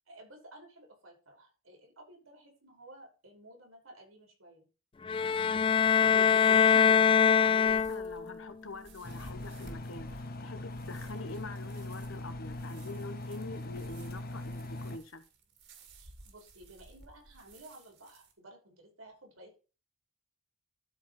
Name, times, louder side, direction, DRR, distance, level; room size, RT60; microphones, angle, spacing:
voice 1, 0.1-4.7 16.0-19.6, right 1 dB, 90° right, 5.5 m, -54 dB
sound 1, 5.1-8.3, left 7 dB, 25° left, 0.3 m, -23 dB
voice 2, 6.0-15.2, left 3 dB, 70° left, 1.2 m, -45 dB
sound 2, 7.7-18.3, right 2 dB, 60° right, 2.6 m, -55 dB
Engine, 9.0-15.0, left 1 dB, 50° left, 1.1 m, -41 dB
12.5 x 5.0 x 4.3 m
head